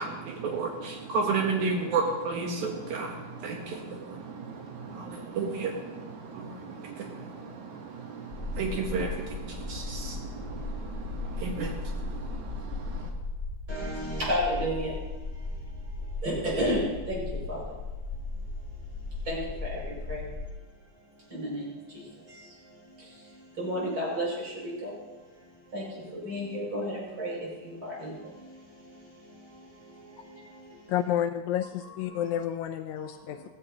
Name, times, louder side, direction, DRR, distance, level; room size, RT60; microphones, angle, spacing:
voice 1, 0.0-13.1, right 4 dB, 75° right, 1 dB, 2.5 m, -33 dB
sound 1, 8.3-20.5, left 3 dB, 10° left, 2.1 m, -36 dB
voice 2, 13.7-17.8 19.2-20.3 21.3-30.9 31.8-32.2 33.3-33.5, equal, 40° right, -5 dB, 6.7 m, -34 dB
voice 3, 30.9-33.4, left 10 dB, 80° left, 7 dB, 1.8 m, -30 dB
16.5 x 15.5 x 2.9 m, 1.2 s
omnidirectional pair, 3.6 m